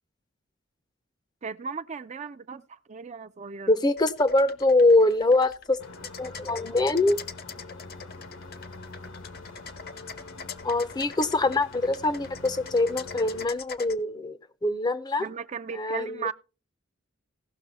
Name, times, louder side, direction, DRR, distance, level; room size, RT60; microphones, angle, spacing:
voice 1, 1.4-3.8 15.2-16.3, right 6 dB, 35° right, 0.4 m, -36 dB
voice 2, 3.7-5.8 6.2-7.2 10.6-15.2 15.7-16.3, left 2 dB, 20° left, 0.6 m, -23 dB
sound 1, 4.0-13.9, left 6 dB, 50° left, 0.9 m, -43 dB
sound 2, 5.8-13.5, left 3 dB, 80° left, 1.5 m, -44 dB
16.5 x 6.2 x 4.1 m
head